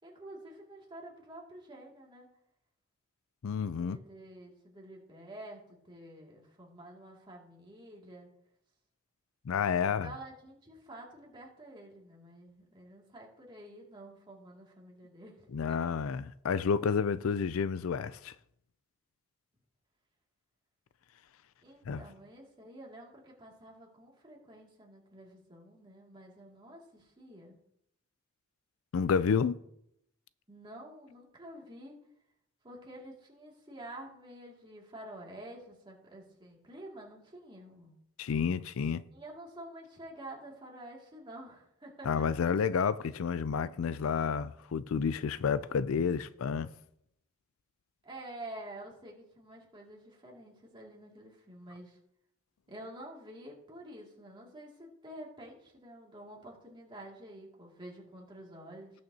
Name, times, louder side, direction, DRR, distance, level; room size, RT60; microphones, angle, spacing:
voice 1, 0.0-2.3 3.8-8.3 9.8-16.0 21.6-27.6 30.5-32.0 32.6-38.0 39.1-42.2 48.0-52.0 52.7-58.9, right 1 dB, 25° right, 2.4 m, -49 dB
voice 2, 3.4-4.0 9.5-10.1 15.5-18.3 21.9-22.0 28.9-29.6 38.2-39.0 42.1-46.7, left 6 dB, 75° left, 0.4 m, -30 dB
18.5 x 6.4 x 2.8 m
head